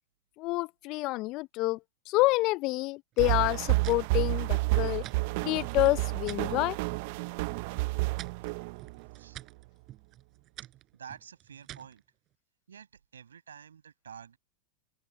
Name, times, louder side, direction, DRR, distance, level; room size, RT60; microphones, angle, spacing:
voice 1, 0.4-1.8 2.1-5.0 5.4-6.8, left 21 dB, 50° left, 0.6 m, -28 dB
sound 1, 3.1-6.5 6.9-7.4 7.7-12.0, right 13 dB, 40° right, 6.0 m, -49 dB
sound 2, 3.2-9.2, right 23 dB, 60° right, 0.9 m, -30 dB
voice 2, 10.9-12.0 12.7-14.4, right 8 dB, 85° right, 6.2 m, -49 dB
open air
hypercardioid pair, 95°, 0 cm